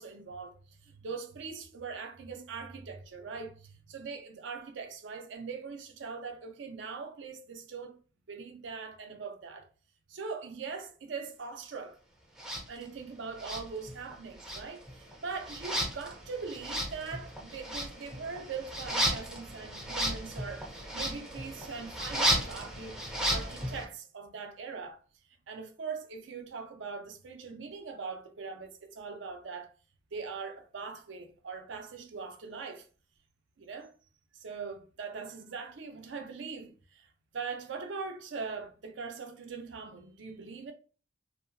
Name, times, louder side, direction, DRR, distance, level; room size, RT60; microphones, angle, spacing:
voice 1, 0.0-8.0 8.3-9.7 10.1-12.0 12.7-20.7 20.9-23.0 23.3-25.0 25.5-29.7 30.1-32.9 33.6-33.9 34.3-40.7, right 5 dB, 85° right, 0.5 m, -41 dB
sound 1, 12.4-12.6 13.4-14.1 14.4-23.8, equal, 5° right, 0.4 m, -34 dB
2.7 x 2.1 x 2.5 m
head